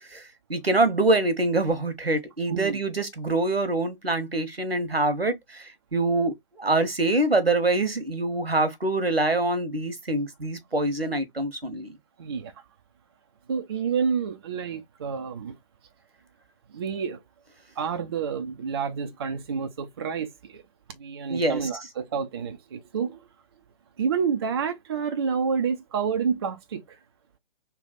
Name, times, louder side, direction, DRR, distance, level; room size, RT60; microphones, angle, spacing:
voice 1, 0.5-11.9 21.3-21.6, right 2 dB, 85° right, 1.1 m, -25 dB
voice 2, 2.5-2.8 12.2-12.5 13.5-15.5 16.7-17.2 17.8-20.6 20.9-23.2 24.0-27.0, right 6 dB, 25° right, 0.4 m, -29 dB
3.2 x 2.2 x 4.0 m
figure-of-eight pair, 130°, 29 cm